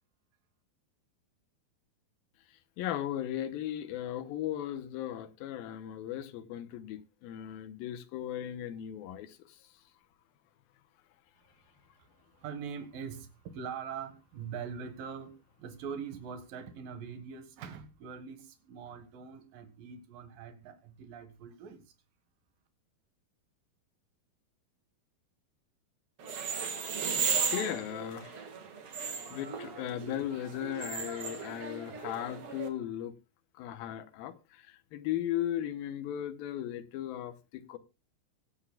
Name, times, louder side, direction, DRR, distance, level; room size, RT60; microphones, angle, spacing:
voice 1, 2.8-9.6 27.1-27.2 27.5-28.4 29.0-33.2 33.5-37.8, left 11 dB, 80° left, 2.6 m, -37 dB
voice 2, 12.4-21.8, right 6 dB, 70° right, 3.1 m, -43 dB
sound 1, 26.2-32.7, right 6 dB, 50° right, 2.1 m, -36 dB
24.0 x 8.1 x 2.2 m
omnidirectional pair, 4.3 m